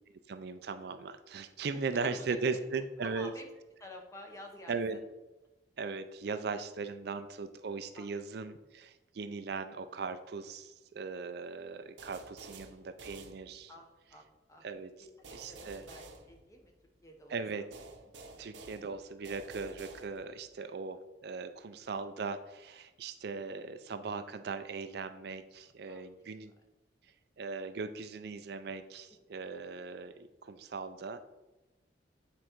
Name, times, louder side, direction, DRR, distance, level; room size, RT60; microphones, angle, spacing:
voice 1, 0.3-3.3 4.7-5.0 5.8-13.7 14.6-14.9 15.3-15.8 17.3-17.7 18.4-26.5 27.4-31.2, right 4 dB, 60° right, 10 dB, 0.4 m, -38 dB
voice 2, 1.9-2.6 3.0-3.5 3.8-4.8 8.0-8.1 13.7-14.6 15.2-16.7 17.0-17.7 18.2-18.4 25.9-26.2 29.3-29.5, left 1 dB, 15° left, 2 dB, 1.0 m, -51 dB
sound 1, 12.0-13.9 15.2-17.0 17.7-20.5, right 3 dB, 85° right, 0.8 m, -51 dB
8.5 x 3.8 x 4.5 m, 1.1 s
head